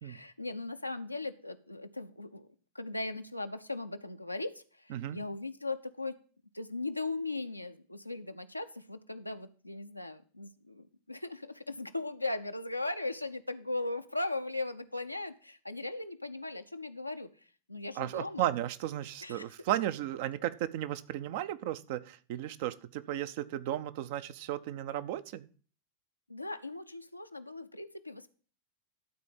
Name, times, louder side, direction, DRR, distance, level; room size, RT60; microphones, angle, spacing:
voice 1, 0.0-2.5 2.7-6.2 6.5-17.3 17.7-18.5 19.2-19.5 26.3-28.3, left 2 dB, 85° left, 8 dB, 0.7 m, -38 dB
voice 2, 18.0-25.5, right 12 dB, 50° right, 13 dB, 0.6 m, -35 dB
12.0 x 4.2 x 7.3 m, 0.40 s
figure-of-eight pair, 90°, 0 cm